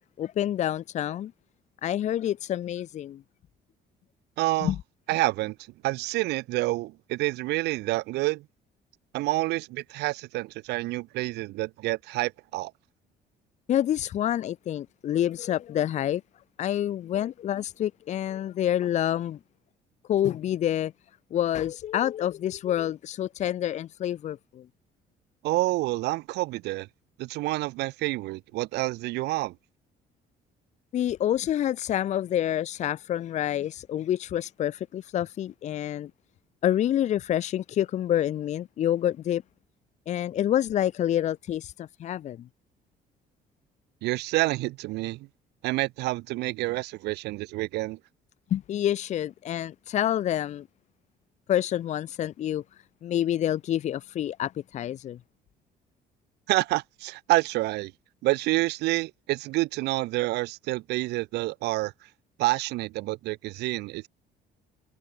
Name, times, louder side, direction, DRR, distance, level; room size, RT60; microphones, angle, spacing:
voice 1, 0.2-1.3 1.8-3.2 4.6-4.7 13.7-16.2 16.6-19.4 20.1-20.9 21.3-24.6 30.9-36.1 36.6-39.4 40.1-42.5 48.5-50.7 51.5-52.6 53.0-55.2, left 11 dB, 45° left, 1.4 m, -27 dB
voice 2, 4.4-4.7 5.1-5.6 5.8-8.4 9.1-12.7 25.4-26.9 27.2-29.6 44.0-45.3 45.6-48.0 56.5-57.9 58.2-61.9 62.4-64.1, right 20 dB, 80° right, 0.6 m, -28 dB
cardioid pair, 180°, 17 cm